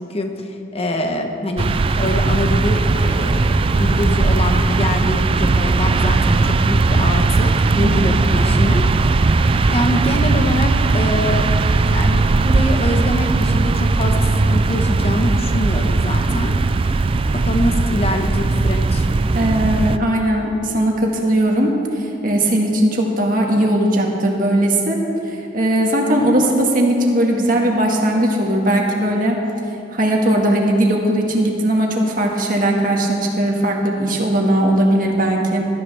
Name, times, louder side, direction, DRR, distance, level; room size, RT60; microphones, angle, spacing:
voice 1, 0.0-8.8 9.7-11.5 11.9-16.6 17.4-19.1, left 1 dB, 35° left, 4 dB, 1.1 m, -24 dB
sound 1, 1.6-20.0, right 3 dB, 30° right, 0.3 m, -18 dB
voice 2, 19.3-25.0 25.3-29.4 29.9-35.6, right 1 dB, 50° right, 0 dB, 1.8 m, -18 dB
17.0 x 13.0 x 3.5 m, 2.7 s
head